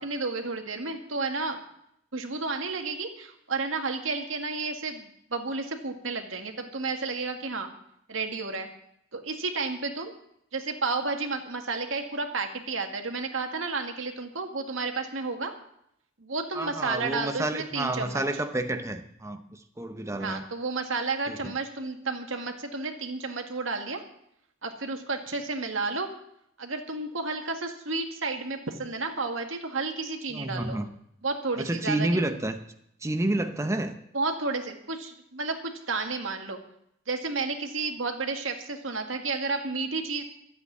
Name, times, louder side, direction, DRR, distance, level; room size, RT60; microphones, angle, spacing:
voice 1, 0.0-1.6 2.1-7.7 8.1-8.7 9.1-10.1 10.5-15.5 16.2-18.2 20.2-24.0 24.6-26.1 26.6-30.8 31.2-32.2 34.1-36.6 37.1-40.2, right 3 dB, 80° right, 4 dB, 1.9 m, -31 dB
voice 2, 16.5-20.4 21.3-21.4 30.3-30.9 31.6-32.6 33.0-34.0, right 1 dB, 15° right, 7 dB, 0.7 m, -29 dB
13.0 x 8.2 x 9.6 m, 0.75 s
head